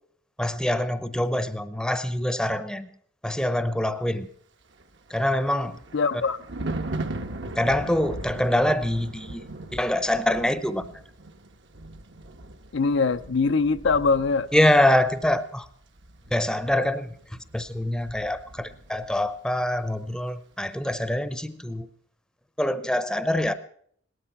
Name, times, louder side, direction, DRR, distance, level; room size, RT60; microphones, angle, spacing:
voice 1, 0.4-2.9 3.2-4.3 5.1-5.8 7.6-10.9 14.5-15.7 16.3-21.9 22.6-23.5, left 1 dB, 5° left, 0.8 m, -25 dB
Thunder, 4.7-19.3 19.6-19.9, right 2 dB, 60° right, 1.3 m, -39 dB
voice 2, 5.9-6.4 12.7-14.5, left 4 dB, 65° left, 0.6 m, -22 dB
18.5 x 13.0 x 5.9 m
head